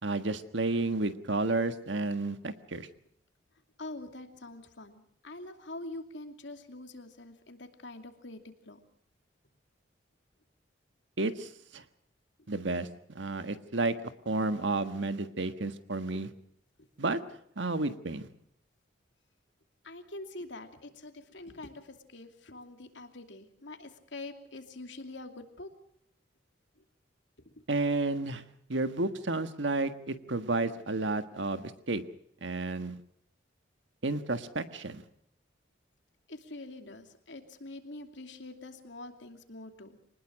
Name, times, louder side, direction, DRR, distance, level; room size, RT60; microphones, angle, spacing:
voice 1, 0.0-2.9 11.2-11.8 12.5-13.9 14.2-16.3 17.0-17.2 17.6-18.3 27.7-28.4 28.7-32.0 32.4-33.0 34.0-35.0, right 2 dB, 75° right, 10 dB, 1.5 m, -31 dB
voice 2, 3.8-8.4 8.7-8.8 19.8-25.7 36.3-40.0, left 2 dB, 70° left, 6 dB, 2.7 m, -45 dB
24.5 x 20.0 x 6.3 m, 0.68 s
head